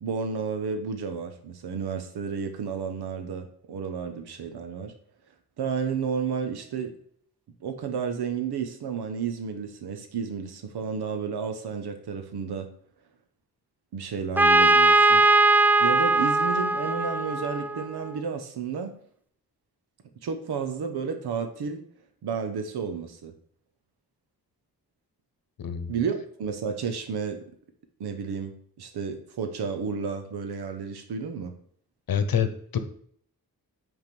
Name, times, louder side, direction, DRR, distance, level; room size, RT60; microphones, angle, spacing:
voice 1, 0.0-4.9 5.6-6.9 7.6-12.7 13.9-15.2 15.8-18.9 20.2-21.8 22.2-23.3 25.9-27.4 28.0-28.5 28.8-31.5, right 6 dB, 85° right, 7 dB, 1.0 m, -31 dB
Trumpet, 14.4-18.1, right 2 dB, 5° right, 0.3 m, -20 dB
voice 2, 25.6-25.9 32.1-32.8, left 7 dB, 65° left, 9 dB, 0.9 m, -26 dB
5.8 x 3.7 x 6.0 m, 0.62 s
cardioid pair, 45°, 38 cm